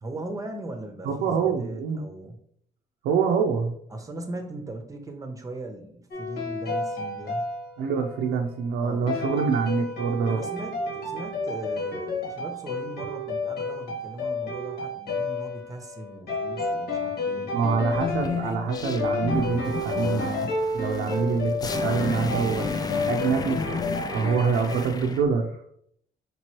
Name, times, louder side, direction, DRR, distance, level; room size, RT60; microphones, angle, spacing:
voice 1, 0.0-2.4 3.9-7.5 8.8-9.2 10.3-17.7 21.0-21.4, right 2 dB, 20° right, 5 dB, 0.7 m, -39 dB
voice 2, 1.0-2.0 3.0-3.7 7.8-10.4 17.5-20.5 20.7-21.5 21.8-22.6 23.1-23.6 24.1-25.6, right 5 dB, 85° right, 2 dB, 0.5 m, -25 dB
sound 1, 6.1-8.3 9.1-24.8, left 2 dB, 70° left, 1.5 m, -31 dB
sound 2, 17.8-25.2, left 5 dB, 25° left, 0.3 m, -32 dB
5.2 x 3.0 x 2.9 m, 0.68 s
cardioid pair, 110°, 17 cm